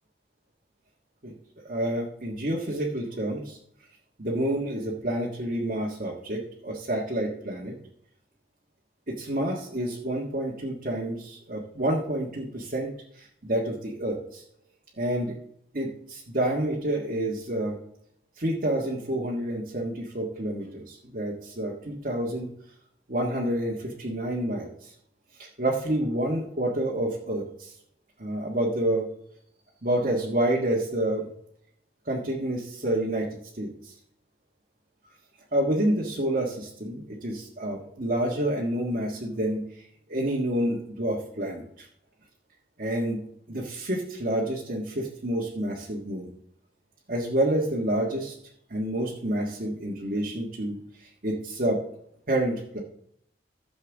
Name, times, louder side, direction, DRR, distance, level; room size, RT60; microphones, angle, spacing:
voice 1, 1.7-3.6 4.2-7.7 9.1-14.4 15.0-15.3 15.7-17.8 18.4-22.5 23.1-24.9 25.4-27.7 28.2-29.1 29.8-31.3 32.0-33.3 33.5-33.9 35.5-39.7 40.1-41.8 42.8-43.2 43.5-46.3 47.1-48.3 48.7-50.7 51.0-51.8 52.3-52.8, right 1 dB, 50° right, -3 dB, 1.6 m, -28 dB
15.5 x 7.2 x 3.5 m, 0.74 s
head